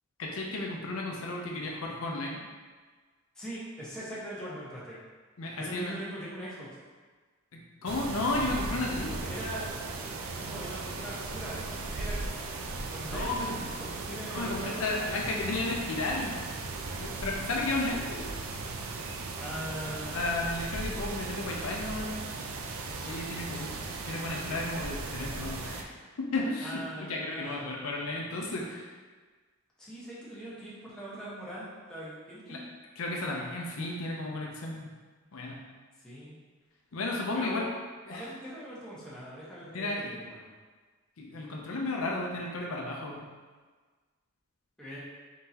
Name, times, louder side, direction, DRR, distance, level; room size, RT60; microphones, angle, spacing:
voice 1, 0.2-2.4 5.4-6.0 7.5-9.3 13.1-13.6 14.3-16.4 16.9-18.3 20.1-22.2 23.0-23.7 24.1-25.9 26.2-28.9 32.5-32.6 33.0-34.9 35.3-35.6 36.9-37.6 38.1-38.3 39.7-40.0 41.2-43.2, left 2 dB, 75° left, -1 dB, 0.6 m, -33 dB
voice 2, 3.3-5.0 5.6-6.7 9.3-9.8 10.3-12.2 12.9-15.1 19.4-20.2 23.5-23.7 26.6-27.5 29.8-32.7 36.0-36.4 37.3-37.6 38.1-40.5 44.8-45.0, equal, 5° left, -9 dB, 1.2 m, -41 dB
sound 1, 7.8-25.8, right 3 dB, 80° right, 0.5 m, -37 dB
4.0 x 3.7 x 2.8 m, 1.4 s
head